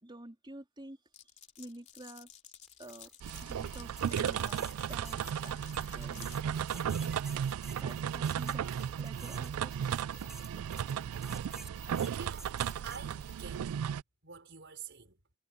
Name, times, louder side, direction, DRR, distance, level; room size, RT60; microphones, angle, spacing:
voice 1, 0.0-1.0 1.6-2.3 2.8-3.1 3.4-5.2 5.4-5.6 5.9-6.3 7.7-8.7 9.0-9.9, right 1 dB, 20° right, 3.4 m, -49 dB
Glass, 1.1-6.4, left 9 dB, 30° left, 3.1 m, -53 dB
sound 1, 2.7-13.6, right 1 dB, ahead, 3.3 m, -52 dB
sound 2, 3.2-14.0, right 8 dB, 80° right, 0.3 m, -35 dB
voice 2, 12.1-13.8 14.2-15.2, right 6 dB, 55° right, 5.4 m, -48 dB
head